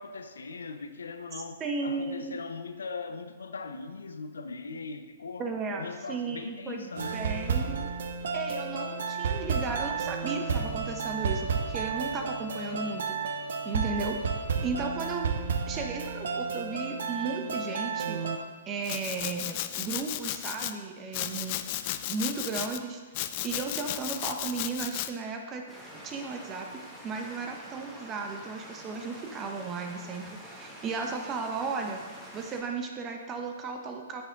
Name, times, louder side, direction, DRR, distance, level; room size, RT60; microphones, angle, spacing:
voice 1, 0.0-5.5 5.8-7.2, left 4 dB, 75° left, 0.7 m, -40 dB
voice 2, 1.6-2.4 5.4-7.9 8.3-13.2 13.6-14.2 14.6-15.3 15.7-18.2 18.7-21.6 22.1-23.0 23.4-25.6 25.9-26.7 27.0-32.0 32.3-34.2, right 4 dB, 25° right, 1.0 m, -35 dB
sound 1, 7.0-18.4, right 5 dB, 65° right, 0.8 m, -32 dB
Domestic sounds home sounds, 18.8-20.7 21.1-22.8 23.1-25.1, left 13 dB, 45° left, 0.4 m, -34 dB
sound 2, 25.7-32.6, equal, 5° right, 1.7 m, -47 dB
9.5 x 6.8 x 3.6 m
figure-of-eight pair, 120°, 0 cm